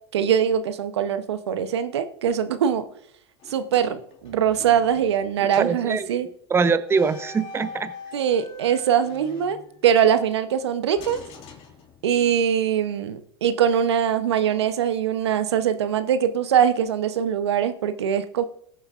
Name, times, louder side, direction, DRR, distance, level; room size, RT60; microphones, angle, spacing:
voice 1, 0.1-2.8 3.5-6.3 8.1-9.6 9.8-11.2 12.0-18.4, right 8 dB, 80° right, 11 dB, 0.8 m, -22 dB
sound 1, 3.4-5.2 5.5-5.8 6.8-10.1 10.9-12.4, left 2 dB, 45° left, 2.6 m, -43 dB
voice 2, 5.6-7.9, right 5 dB, 20° right, 12 dB, 0.8 m, -23 dB
19.5 x 7.2 x 2.5 m, 0.68 s
hypercardioid pair, 100°, 14 cm